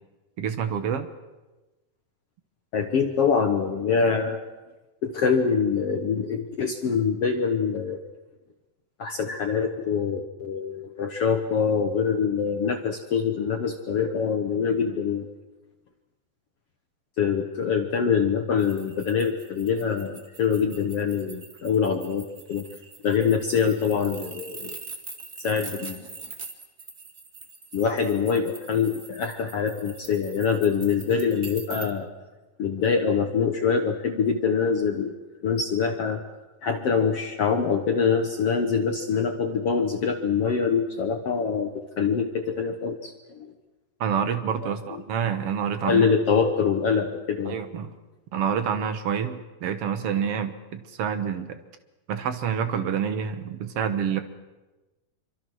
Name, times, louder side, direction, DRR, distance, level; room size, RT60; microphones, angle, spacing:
voice 1, 0.4-1.1 44.0-46.1 47.4-47.9 48.3-51.6 52.1-54.2, right 7 dB, 70° right, 9 dB, 1.4 m, -27 dB
voice 2, 2.7-4.5 5.0-8.0 9.0-15.3 17.2-22.7 23.0-24.8 25.4-26.0 27.7-32.1 32.6-35.1 35.4-36.2 36.6-43.5 44.6-44.7 45.8-47.6, left 6 dB, 65° left, 5 dB, 1.5 m, -24 dB
sound 1, 18.6-31.9, right 4 dB, 35° right, 1.7 m, -43 dB
26.5 x 25.0 x 6.3 m, 1.1 s
omnidirectional pair, 4.4 m